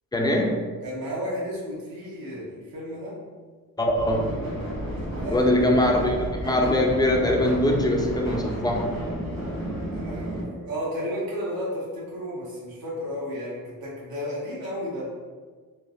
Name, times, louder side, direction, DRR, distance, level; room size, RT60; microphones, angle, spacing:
voice 1, 0.1-0.6 3.8-4.3 5.3-8.9, left 1 dB, 10° left, 1 dB, 0.4 m, -22 dB
voice 2, 0.8-3.1 5.2-5.5 9.9-15.1, equal, 75° right, -7 dB, 1.1 m, -33 dB
sound 1, 3.9-10.4, equal, 50° right, 1.2 m, -32 dB
3.3 x 2.1 x 2.4 m, 1.5 s
cardioid pair, 80°, 36 cm